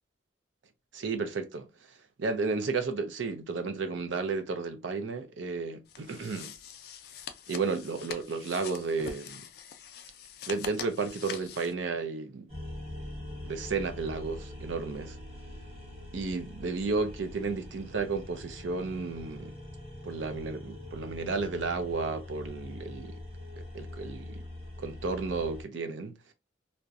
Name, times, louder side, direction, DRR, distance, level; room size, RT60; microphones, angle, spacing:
voice 1, 0.9-1.7 2.2-6.5 7.5-9.5 10.5-12.5 13.5-15.2 16.1-19.5 20.0-23.2 23.7-24.4 24.8-26.1, right 4 dB, 80° right, 0.5 m, -33 dB
sound 1, 5.9-11.7, left 7 dB, 55° left, 0.3 m, -44 dB
sound 2, 12.5-25.6, left 1 dB, 30° right, 0.8 m, -43 dB
2.6 x 2.1 x 2.4 m
head